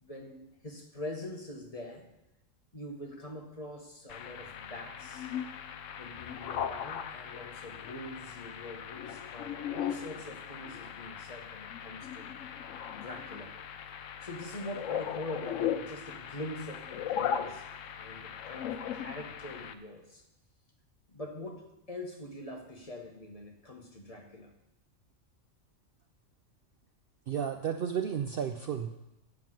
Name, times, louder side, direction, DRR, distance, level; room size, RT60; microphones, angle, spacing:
voice 1, 0.0-2.1 2.7-5.3 6.0-12.3 12.9-13.5 14.2-17.7 18.0-20.2 21.1-24.5, left 1 dB, 30° left, 1 dB, 1.2 m, -43 dB
sound 1, 4.1-19.7, left 9 dB, 80° left, 1.0 m, -38 dB
voice 2, 27.3-28.9, right 8 dB, 60° right, 6 dB, 0.6 m, -32 dB
8.9 x 5.8 x 7.6 m, 0.95 s
omnidirectional pair, 1.3 m